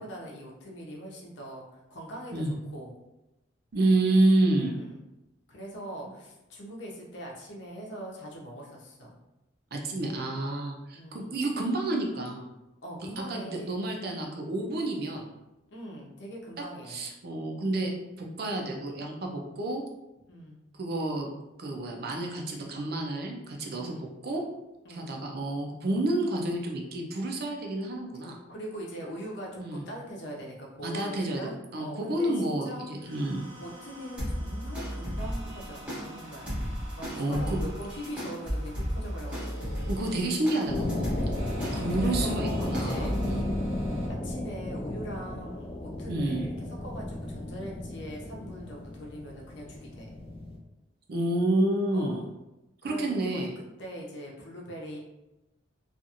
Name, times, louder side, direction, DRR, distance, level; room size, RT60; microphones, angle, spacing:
voice 1, 0.0-1.7 1.9-2.9 4.5-5.0 5.5-9.2 10.9-11.4 12.8-13.7 15.7-17.0 20.3-20.6 23.7-24.1 24.8-25.1 28.5-32.9 33.6-36.6 36.9-39.8 41.5-43.5 44.1-50.2 51.9-52.3 52.8-53.0 53.3-53.4 53.8-55.0, equal, 65° left, -2 dB, 0.7 m, -42 dB
voice 2, 3.7-4.8 9.7-12.4 13.0-15.3 16.9-19.8 20.8-21.3 21.6-23.9 24.2-24.4 24.9-28.4 29.6-29.8 30.8-31.4 31.7-33.4 37.1-37.6 39.9-41.3 41.7-43.5 46.1-46.5 51.1-52.2 52.8-53.6, right 2 dB, 50° right, 1 dB, 0.5 m, -29 dB
sound 1, 33.0-44.1, right 1 dB, 75° right, 1.1 m, -48 dB
sound 2, 34.2-43.3, equal, 5° right, 0.7 m, -35 dB
sound 3, 40.7-50.6, left 1 dB, 30° left, 0.3 m, -34 dB
2.5 x 2.4 x 2.8 m, 0.96 s
head